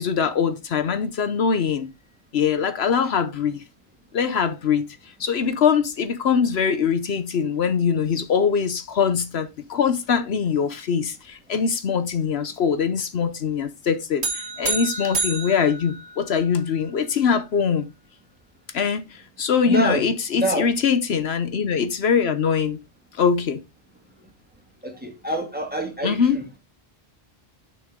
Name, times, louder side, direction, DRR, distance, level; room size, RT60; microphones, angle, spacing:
voice 1, 0.0-1.9 2.3-3.6 4.1-4.8 5.2-17.9 18.7-22.8 23.1-23.6 26.0-26.4, left 6 dB, 75° left, 1.1 m, -22 dB
sound 1, 14.2-16.7, right 3 dB, 85° right, 1.8 m, -29 dB
voice 2, 19.7-20.0 20.4-20.7 24.8-26.6, right 1 dB, 10° right, 2.2 m, -26 dB
9.1 x 6.4 x 3.7 m
omnidirectional pair, 1.1 m